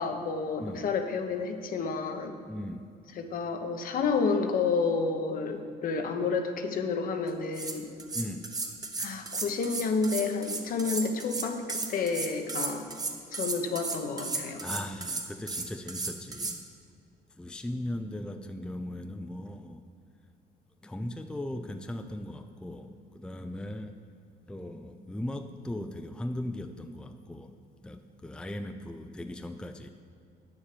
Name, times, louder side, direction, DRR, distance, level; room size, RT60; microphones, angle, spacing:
voice 1, 0.0-2.3 3.2-7.9 9.0-12.9 13.3-14.6, left 4 dB, 55° left, 6 dB, 1.0 m, -30 dB
voice 2, 2.4-2.9 8.1-8.5 14.6-16.6 17.4-19.8 20.8-24.0 24.5-27.6 27.8-29.9, left 1 dB, 5° left, 6 dB, 0.5 m, -38 dB
sound 1, 7.3-16.6, right 3 dB, 20° right, 1.0 m, -34 dB
9.2 x 7.2 x 6.8 m, 2.4 s
cardioid pair, 110°, 17 cm